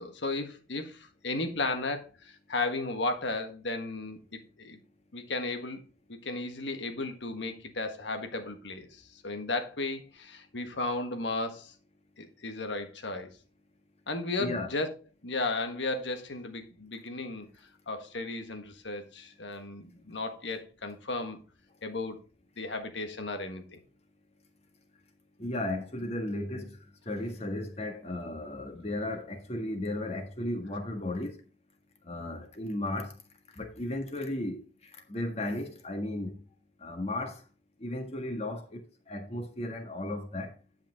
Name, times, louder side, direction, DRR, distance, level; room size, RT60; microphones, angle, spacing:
voice 1, 0.0-4.8 5.1-5.8 6.1-8.9 9.2-11.7 12.2-13.3 14.1-14.9 15.2-17.5 17.9-21.4 21.8-22.2 22.6-23.8, left 2 dB, 75° left, 1.5 m, -34 dB
voice 2, 25.4-26.8 27.0-31.4 32.0-33.2 33.5-36.4 36.8-37.4 37.8-40.5, left 1 dB, 35° left, 1.7 m, -35 dB
10.5 x 5.9 x 3.6 m
head